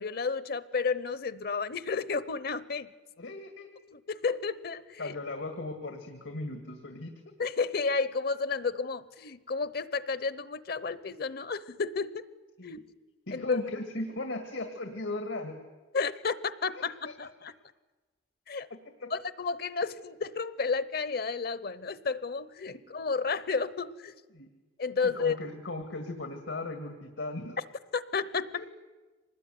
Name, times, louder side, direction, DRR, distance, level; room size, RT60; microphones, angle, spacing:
voice 1, 0.0-2.9 3.9-5.1 7.4-12.2 12.6-12.8 13.3-13.6 15.9-17.5 18.5-18.7 19.1-24.2 24.8-25.4 27.9-28.6, left 4 dB, 55° left, 17 dB, 0.9 m, -32 dB
voice 2, 3.2-3.7 5.0-7.1 12.6-12.8 13.3-15.6 16.7-17.1 18.7-19.1 24.3-24.5 25.0-27.6 28.5-28.6, left 2 dB, 85° left, 6 dB, 2.2 m, -37 dB
25.0 x 20.0 x 9.5 m, 1.3 s
head